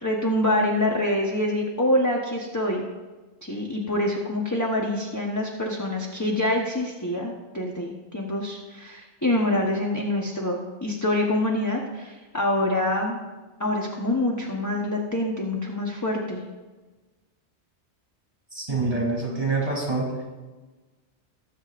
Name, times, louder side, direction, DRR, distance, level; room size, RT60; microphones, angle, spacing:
voice 1, 0.0-2.8 3.4-13.2 13.6-16.4, left 1 dB, 15° left, -1 dB, 0.9 m, -26 dB
voice 2, 18.5-20.1, right 3 dB, 25° right, -3 dB, 3.3 m, -26 dB
19.5 x 7.5 x 2.5 m, 1.2 s
omnidirectional pair, 1.2 m